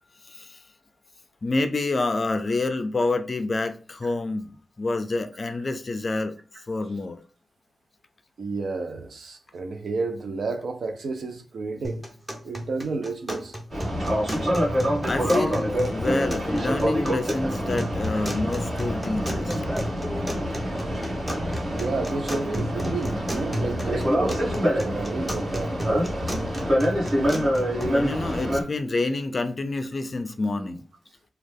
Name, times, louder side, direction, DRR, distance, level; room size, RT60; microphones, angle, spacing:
voice 1, 0.2-0.6 1.4-6.4 6.7-7.2 15.0-19.6 27.9-30.8, left 2 dB, 35° left, 0.4 m, -28 dB
voice 2, 8.4-12.0 12.4-13.5 21.6-26.3, right 3 dB, 65° right, 0.5 m, -31 dB
sound 1, 11.8-27.8, equal, 10° right, 0.6 m, -35 dB
Boat Water vehicle, 13.7-28.6, equal, 50° right, 1.6 m, -26 dB
3.1 x 2.3 x 3.3 m
wide cardioid pair, 130°, 0 cm